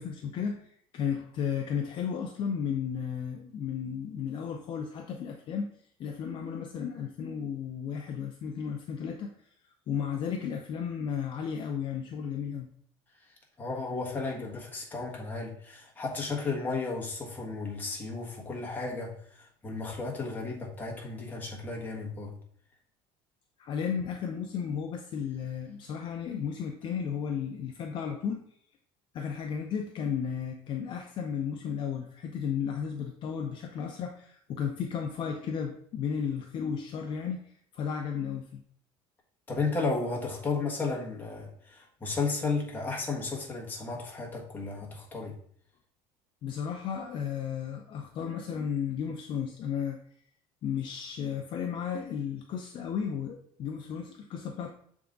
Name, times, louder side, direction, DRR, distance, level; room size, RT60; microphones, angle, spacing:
voice 1, 0.0-5.7 6.0-9.3 9.9-12.7 23.6-28.4 29.1-38.6 46.4-50.0 50.6-54.7, left 7 dB, 40° left, 3 dB, 0.6 m, -34 dB
voice 2, 13.6-22.3 39.5-45.3, left 3 dB, 15° left, -3 dB, 1.3 m, -34 dB
6.8 x 3.6 x 3.8 m, 0.64 s
cardioid pair, 150°, 12 cm